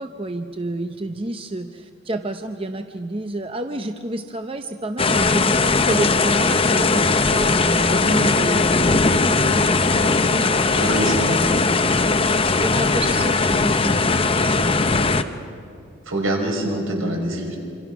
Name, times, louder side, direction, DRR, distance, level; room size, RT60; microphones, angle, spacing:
voice 1, 0.0-9.7 10.0-11.1 11.8-11.9 12.5-15.5, right 2 dB, 25° right, 7 dB, 0.6 m, -30 dB
sound 1, 5.0-15.2, left 3 dB, 25° left, 0.8 m, -19 dB
voice 2, 10.7-11.4 16.1-17.6, right 1 dB, 70° right, 1 dB, 5.3 m, -24 dB
27.0 x 26.0 x 6.1 m, 2.5 s
head